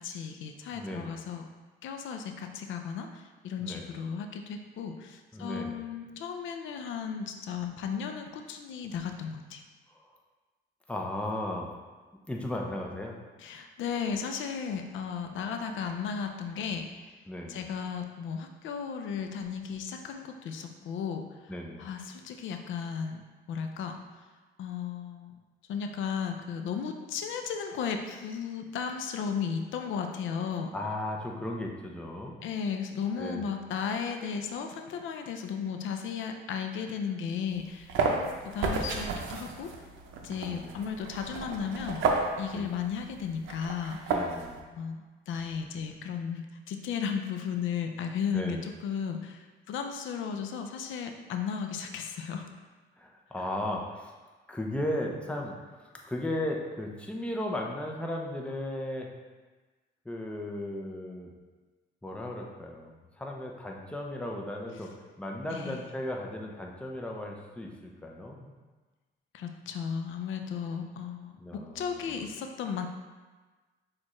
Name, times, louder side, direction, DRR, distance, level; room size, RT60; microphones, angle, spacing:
voice 1, 0.0-1.4 1.8-9.6 13.4-16.9 17.5-21.5 21.8-23.2 23.5-24.0 24.6-25.3 25.7-30.7 32.4-39.7 40.2-42.0 42.4-44.2 44.7-52.4 65.5-65.9 69.3-72.9, left 6 dB, 75° left, 5 dB, 0.5 m, -35 dB
voice 2, 0.7-1.1 3.6-3.9 5.3-5.8 9.9-10.0 10.9-11.7 12.3-13.2 17.3-17.7 21.5-21.9 30.7-32.4 33.2-33.5 40.4-40.8 42.5-42.7 44.1-44.6 48.3-48.6 53.0-54.1 54.5-59.1 60.1-61.3 62.0-64.9 65.2-68.5 71.4-72.3, left 1 dB, 5° left, 0 dB, 0.6 m, -36 dB
sound 1, 37.5-44.6, right 4 dB, 80° right, 0.6 m, -32 dB
6.2 x 2.4 x 3.0 m, 1.3 s
cardioid pair, 90°, 20 cm